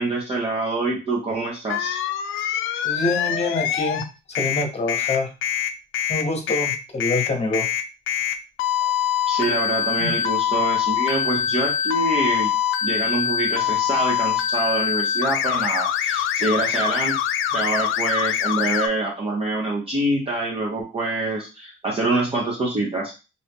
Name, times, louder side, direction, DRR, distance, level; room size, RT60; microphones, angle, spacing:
voice 1, 0.0-1.9 8.8-8.9 9.3-12.5 12.8-17.2 17.5-23.2, right 2 dB, 30° right, -3 dB, 0.8 m, -25 dB
sound 1, 1.7-4.0 4.3-18.9, left 9 dB, 80° left, 0.4 m, -24 dB
voice 2, 2.8-4.0 4.3-5.3 6.1-7.7 10.0-10.1, left 2 dB, 30° left, 3 dB, 1.1 m, -25 dB
2.7 x 2.6 x 3.5 m, 0.31 s
cardioid pair, 90°, 20 cm